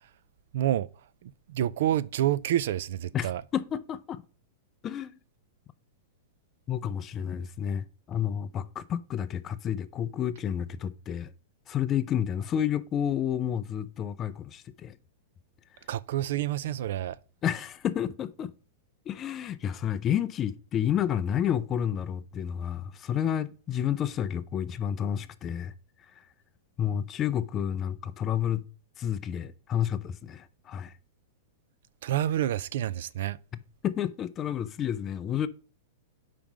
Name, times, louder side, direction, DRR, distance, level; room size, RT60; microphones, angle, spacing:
voice 1, 0.5-0.9 1.2-3.4 15.9-17.2 32.0-33.4, right 12 dB, 60° right, 0.4 m, -28 dB
voice 2, 3.1-4.2 4.8-5.2 6.7-11.3 11.7-15.0 17.4-18.5 19.1-25.7 26.8-28.7 29.0-30.9 33.8-35.5, left 9 dB, 20° left, 0.4 m, -30 dB
5.4 x 5.1 x 5.9 m
supercardioid pair, 165°, 0 cm